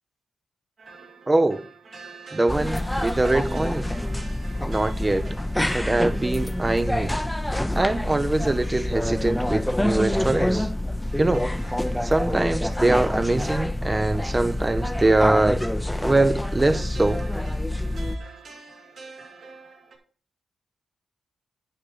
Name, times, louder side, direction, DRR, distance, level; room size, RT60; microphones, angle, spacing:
sound 1, 0.8-20.0, right 4 dB, 70° right, 2.8 m, -47 dB
voice 1, 1.3-1.6 2.3-3.9 4.7-5.3 5.7-7.1 7.7-10.7 11.2-11.5 12.0-15.6 16.0-17.2, right 2 dB, 25° right, 0.8 m, -23 dB
sound 2, 2.5-18.2, left 1 dB, 5° left, 0.7 m, -27 dB
10.0 x 3.7 x 6.7 m
supercardioid pair, 45°, 0 cm